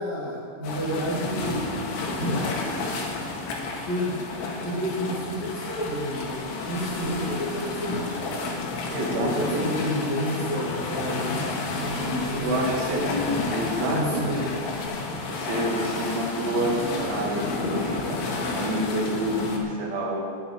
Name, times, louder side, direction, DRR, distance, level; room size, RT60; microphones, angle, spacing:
voice 1, 0.0-1.7 2.1-2.6 3.9-4.2 4.6-8.6 9.2-12.6 12.9-13.1 13.9-14.5, equal, 40° left, -7 dB, 3.3 m, -30 dB
sound 1, 0.6-19.6, left 3 dB, 70° left, 3.9 m, -31 dB
voice 2, 8.9-9.7 11.0-11.4 12.4-14.3 15.3-18.2 18.5-20.2, right 1 dB, 70° right, -2 dB, 4.5 m, -28 dB
20.0 x 9.4 x 4.5 m, 2.3 s
omnidirectional pair, 5.8 m